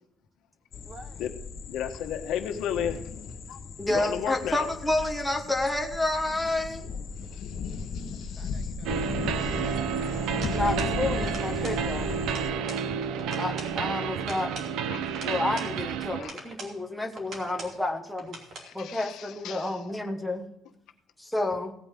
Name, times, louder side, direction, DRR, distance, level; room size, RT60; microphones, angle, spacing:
sound 1, 0.7-12.5, left 5 dB, 45° left, 1.1 m, -37 dB
voice 1, 0.8-1.3 8.1-9.8, right 3 dB, 25° right, 9 dB, 1.0 m, -52 dB
voice 2, 1.7-3.1 3.5-3.6 3.9-4.7 7.3-8.7 9.4-10.6 14.9-15.2 16.2-16.3 18.6-19.8, left 9 dB, 65° left, 6 dB, 1.3 m, -35 dB
voice 3, 3.8-6.9 8.2-8.5 10.5-12.1 13.4-14.5 15.2-18.4 18.7-20.5 21.2-21.7, left 2 dB, ahead, 3 dB, 1.2 m, -30 dB
sound 2, 8.9-16.2, right 7 dB, 80° right, 0.8 m, -30 dB
sound 3, 10.4-11.0 11.2-11.8 12.1-12.9 13.2-13.8 14.2-15.7 16.2-16.8 17.2-17.8 18.2-18.7, right 2 dB, 45° right, 2.9 m, -42 dB
17.0 x 8.9 x 3.7 m, 0.79 s
cardioid pair, 165°, 0 cm